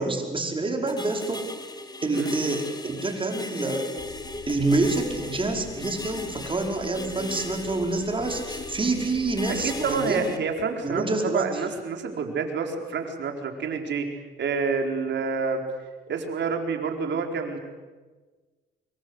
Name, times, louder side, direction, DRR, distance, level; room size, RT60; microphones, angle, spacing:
voice 1, 0.0-1.5 2.0-3.9 4.5-10.4 10.8-11.5, right 3 dB, 25° right, 3 dB, 5.1 m, -27 dB
sound 1, 0.9-10.4, left 2 dB, 20° left, 2.5 m, -37 dB
sound 2, 4.0-10.0, left 5 dB, 55° left, 4.8 m, -46 dB
voice 2, 9.6-11.0 11.3-14.1 14.4-15.6 16.1-17.6, right 5 dB, 65° right, 4 dB, 4.6 m, -28 dB
25.5 x 23.5 x 8.2 m, 1.3 s
cardioid pair, 90°, 20 cm